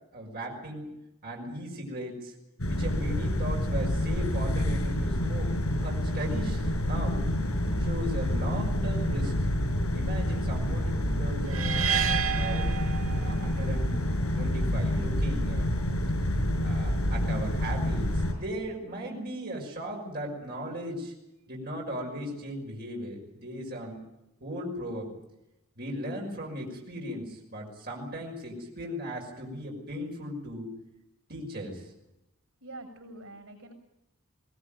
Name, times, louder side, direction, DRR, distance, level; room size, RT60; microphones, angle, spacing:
voice 1, 0.1-0.9 1.2-2.4 2.7-7.2 7.8-9.5 9.9-11.7 12.3-12.8 13.1-14.0 14.3-15.7 16.6-21.1 21.5-24.0 24.4-25.1 25.8-30.7 31.3-31.9, equal, 50° right, -1 dB, 5.9 m, -37 dB
sound 1, 2.6-18.3, left 1 dB, 85° left, 5.9 m, -28 dB
sound 2, 11.5-13.6, right 8 dB, 70° right, 1.2 m, -30 dB
voice 2, 32.6-33.7, right 2 dB, 85° right, 4 dB, 7.0 m, -45 dB
21.5 x 20.0 x 9.1 m, 0.89 s
head